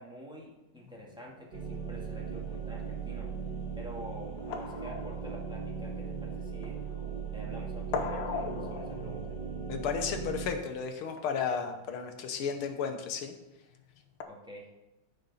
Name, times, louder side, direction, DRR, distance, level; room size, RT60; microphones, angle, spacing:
voice 1, 0.0-3.3 3.7-6.8 7.3-9.4 14.3-14.7, equal, ahead, -3 dB, 1.7 m, -47 dB
sound 1, 0.7-14.2, left 5 dB, 70° left, 1.6 m, -43 dB
sound 2, 1.5-10.6, right 6 dB, 55° right, 2.3 m, -38 dB
voice 2, 9.7-13.3, left 6 dB, 90° left, 6 dB, 1.9 m, -33 dB
14.5 x 5.3 x 4.1 m, 0.98 s
omnidirectional pair, 2.3 m